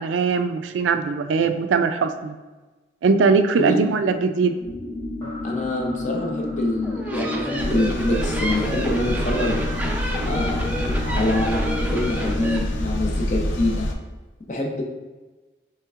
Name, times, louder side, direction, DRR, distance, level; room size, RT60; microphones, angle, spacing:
voice 1, 0.0-2.4 3.0-4.5, right 5 dB, 80° right, 9 dB, 0.3 m, -20 dB
sound 1, 4.6-12.7, left 2 dB, 25° left, 1.1 m, -32 dB
voice 2, 5.4-9.7 10.2-13.9 14.5-14.8, left 1 dB, 40° left, 1 dB, 0.6 m, -26 dB
sound 2, 6.8-12.6, right 1 dB, 10° right, 0.4 m, -30 dB
sound 3, 7.6-13.9, left 1 dB, 85° left, 0.5 m, -27 dB
5.6 x 3.4 x 2.4 m, 1.2 s
head